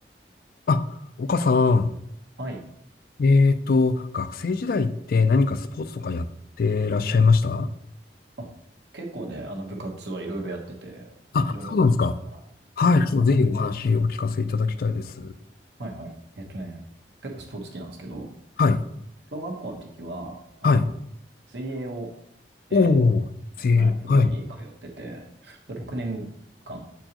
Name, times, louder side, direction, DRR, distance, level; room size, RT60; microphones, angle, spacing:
voice 1, 0.7-1.9 3.2-6.3 6.6-7.7 11.3-12.1 12.8-15.3 18.6-18.8 20.6-20.9 22.7-23.2 23.6-24.3, left 4 dB, 55° left, 11 dB, 0.4 m, -21 dB
voice 2, 8.9-11.7 12.3-12.4 13.2-13.3 15.8-16.8 17.2-18.3 19.3-20.9 21.5-22.1 22.7-22.9 23.6-26.3 26.7-26.8, right 2 dB, 75° right, 1 dB, 1.2 m, -36 dB
7.7 x 4.5 x 3.0 m, 0.75 s
head